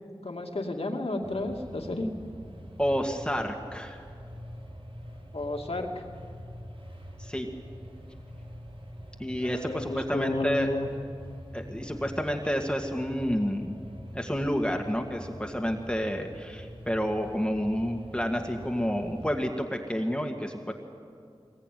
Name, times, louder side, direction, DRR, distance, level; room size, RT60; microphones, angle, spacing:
voice 1, 0.2-2.1 5.3-6.0 9.4-10.9, left 2 dB, 85° left, 2 dB, 2.6 m, -32 dB
sound 1, 1.2-19.4, equal, 70° right, 3.9 m, -45 dB
voice 2, 2.8-4.0 7.2-7.5 9.2-10.7 11.5-13.7 14.1-20.7, equal, 10° left, 3 dB, 2.1 m, -29 dB
23.0 x 21.0 x 9.4 m, 2.3 s
wide cardioid pair, 45°, 10 cm